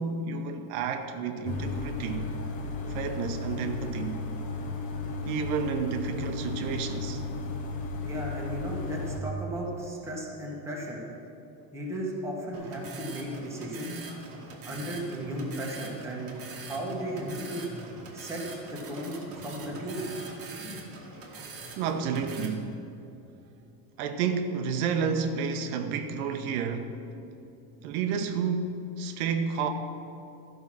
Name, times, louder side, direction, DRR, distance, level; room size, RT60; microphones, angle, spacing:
voice 1, 0.0-2.3 2.9-4.2 5.3-7.2 21.8-22.8 24.0-27.0 27.8-29.7, right 6 dB, 75° right, 7 dB, 0.9 m, -30 dB
sound 1, 1.4-9.2, left 3 dB, 20° left, 0.4 m, -34 dB
voice 2, 8.0-11.0 11.7-14.0 14.6-17.6 18.1-18.4 18.7-20.1, right 1 dB, 5° right, -3 dB, 1.0 m, -35 dB
sound 2, 12.5-22.5, right 2 dB, 30° right, 1.2 m, -42 dB
13.0 x 5.5 x 6.0 m, 2.8 s
cardioid pair, 180°, 44 cm